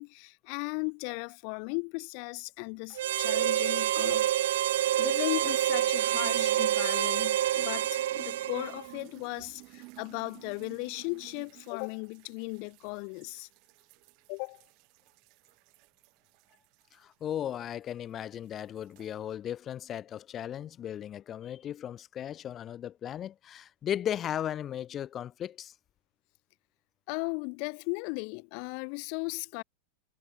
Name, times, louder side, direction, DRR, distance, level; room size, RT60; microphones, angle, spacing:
voice 1, 0.0-4.6 5.0-13.5 14.3-14.6 27.1-29.6, left 40 dB or more, 50° left, 1.1 m, -36 dB
sound 1, 2.8-5.7 6.0-17.9 18.2-19.1, right 28 dB, 45° right, 7.1 m, -53 dB
Harmonica, 3.0-8.9, right 13 dB, 80° right, 0.8 m, -27 dB
voice 2, 16.9-25.7, left 10 dB, 25° left, 3.4 m, -36 dB
supercardioid pair, 145°, 0 cm